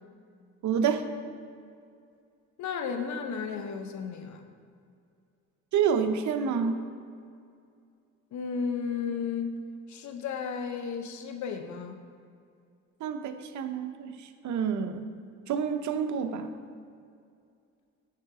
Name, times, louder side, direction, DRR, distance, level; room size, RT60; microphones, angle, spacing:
voice 1, 0.6-1.0 5.7-6.8 13.0-14.1 14.4-15.0 15.5-16.5, right 7 dB, 70° right, 8 dB, 0.8 m, -28 dB
voice 2, 2.6-4.4 8.3-9.6 9.9-12.0, left 6 dB, 70° left, 6 dB, 0.9 m, -33 dB
10.5 x 4.9 x 4.8 m, 2.4 s
cardioid pair, 90°, 30 cm